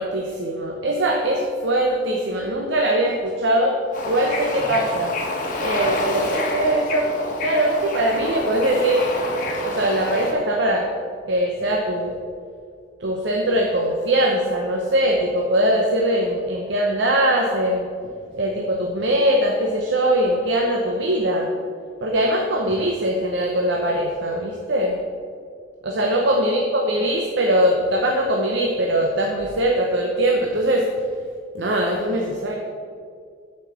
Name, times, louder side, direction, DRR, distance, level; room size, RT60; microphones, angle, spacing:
voice 1, 0.0-3.8 4.0-5.1 5.6-7.1 7.4-9.1 9.6-10.9 11.3-12.1 13.0-17.9 18.3-21.5 22.0-25.0 25.8-30.9 31.5-32.6, right 1 dB, 70° right, 1 dB, 0.8 m, -21 dB
Bird / Ocean, 3.9-10.3, left 2 dB, 45° left, 1.2 m, -28 dB
7.2 x 5.3 x 7.1 m, 2.2 s
head